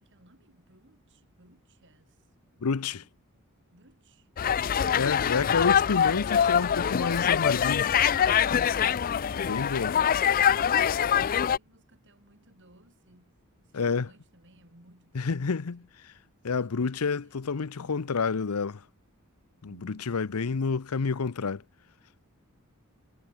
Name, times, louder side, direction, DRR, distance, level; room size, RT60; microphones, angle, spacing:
voice 1, 0.0-3.1 3.7-4.3 8.6-15.9 16.5-16.7 17.0-18.2 19.7-21.2, right 1 dB, 55° right, 5.9 m, -60 dB
voice 2, 2.6-3.0 5.0-7.9 9.3-9.9 13.7-14.1 15.1-16.1 16.4-18.8 19.6-21.6, left 5 dB, 80° left, 0.7 m, -29 dB
sound 1, 4.4-11.6, left 8 dB, 40° left, 0.4 m, -24 dB
head